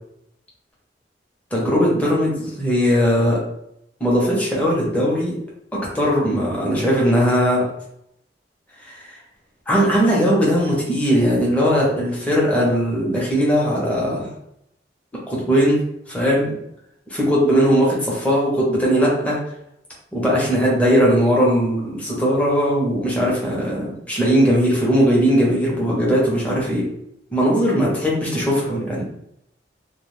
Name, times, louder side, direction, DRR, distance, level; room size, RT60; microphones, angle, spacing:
voice 1, 1.5-3.4 4.0-5.3 5.7-7.6 8.8-9.2 9.7-14.3 15.3-15.8 16.1-16.6 17.1-19.4 20.1-26.8 27.3-29.1, equal, 10° left, -5 dB, 0.7 m, -19 dB
2.3 x 2.3 x 3.1 m, 0.76 s
head